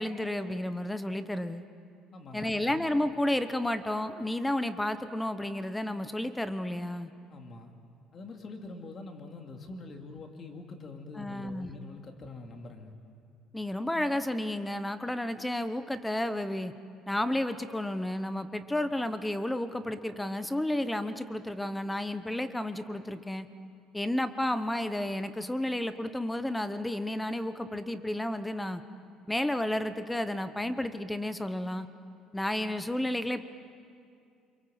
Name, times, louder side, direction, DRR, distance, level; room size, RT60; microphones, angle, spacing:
voice 1, 0.0-1.6 2.3-7.1 11.2-11.7 13.5-16.7 17.1-23.5 23.9-28.8 29.3-31.9 32.3-33.4, left 1 dB, 5° left, 11 dB, 0.9 m, -32 dB
voice 2, 2.1-2.8 7.3-7.7 8.1-12.9, left 3 dB, 30° left, 3 dB, 2.5 m, -45 dB
27.5 x 24.0 x 7.8 m, 2.4 s
cardioid pair, 160°, 0 cm